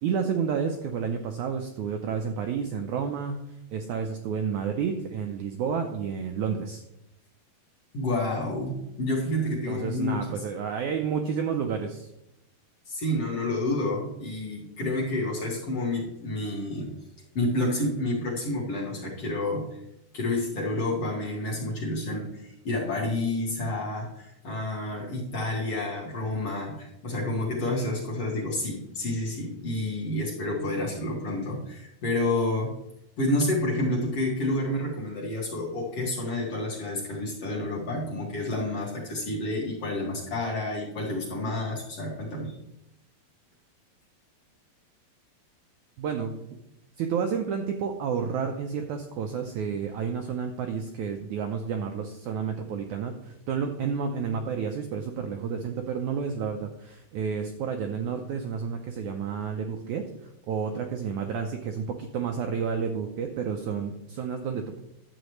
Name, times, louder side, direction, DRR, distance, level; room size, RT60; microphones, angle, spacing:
voice 1, 0.0-3.4 3.7-6.8 9.7-12.1 46.0-46.4 47.0-60.0 60.5-64.8, right 6 dB, 85° right, 4 dB, 1.7 m, -30 dB
voice 2, 7.9-10.4 12.9-16.9 17.4-19.7 20.1-32.7 33.2-42.5, left 1 dB, 50° left, -4 dB, 2.2 m, -29 dB
11.5 x 7.9 x 3.1 m, 0.86 s
omnidirectional pair, 4.2 m